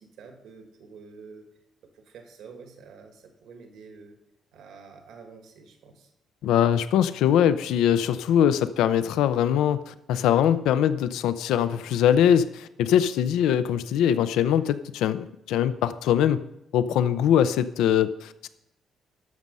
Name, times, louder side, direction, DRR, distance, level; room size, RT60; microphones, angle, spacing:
voice 1, 0.0-1.5 1.8-4.2 4.5-6.1, right 5 dB, 80° right, 4 dB, 1.9 m, -48 dB
voice 2, 6.4-16.4 16.7-18.5, left 9 dB, 90° left, 13 dB, 0.4 m, -22 dB
12.5 x 6.3 x 5.4 m, 0.84 s
cardioid pair, 90°, 0 cm